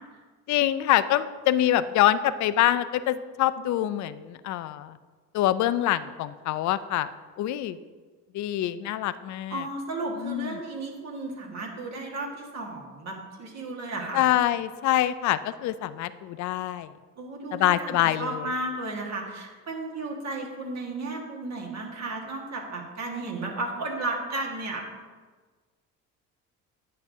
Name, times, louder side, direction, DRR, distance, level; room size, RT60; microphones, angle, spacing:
voice 1, 0.5-5.0 5.3-7.1 7.4-7.8 8.3-9.6 10.2-10.6 14.1-16.9 17.5-18.5, left 13 dB, 55° left, 13 dB, 0.4 m, -25 dB
voice 2, 9.5-14.3 17.2-24.8, right 2 dB, 50° right, 0 dB, 1.7 m, -34 dB
9.4 x 6.6 x 2.7 m, 1.4 s
supercardioid pair, 85°, 34 cm